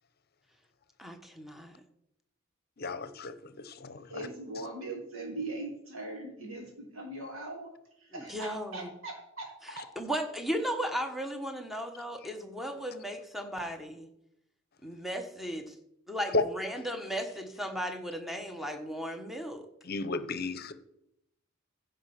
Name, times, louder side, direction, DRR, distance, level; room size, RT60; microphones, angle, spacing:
voice 1, 1.0-1.7 8.1-8.9 9.6-14.1 14.8-15.7 16.1-19.6, equal, ahead, 5 dB, 1.2 m, -36 dB
voice 2, 2.8-4.3 4.6-4.7 16.3-16.4 19.8-20.7, left 3 dB, 50° left, 13 dB, 0.8 m, -33 dB
voice 3, 4.1-7.7 8.0-9.5 9.7-9.9, right 2 dB, 90° right, 1 dB, 3.3 m, -40 dB
15.5 x 5.4 x 5.9 m, 0.79 s
head